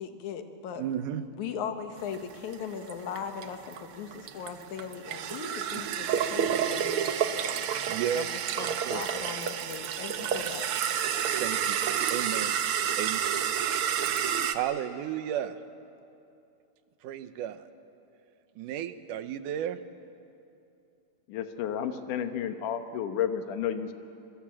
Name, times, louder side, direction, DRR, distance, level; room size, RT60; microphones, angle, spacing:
voice 1, 0.0-0.8 1.3-7.6 8.1-10.9, left 7 dB, 70° left, 8 dB, 2.6 m, -39 dB
voice 2, 0.8-1.3 5.7-5.8 7.9-8.3 8.8-9.0 11.4-11.8 12.1-12.6 13.0-13.2 14.5-15.6 17.0-17.7 18.6-19.8, right 10 dB, 85° right, 11 dB, 2.5 m, -33 dB
sound 1, 2.1-14.5, right 8 dB, 65° right, 1.4 m, -29 dB
voice 3, 21.3-23.9, left 9 dB, 90° left, 8 dB, 2.7 m, -31 dB
27.0 x 22.5 x 7.6 m, 2.7 s
omnidirectional pair, 3.5 m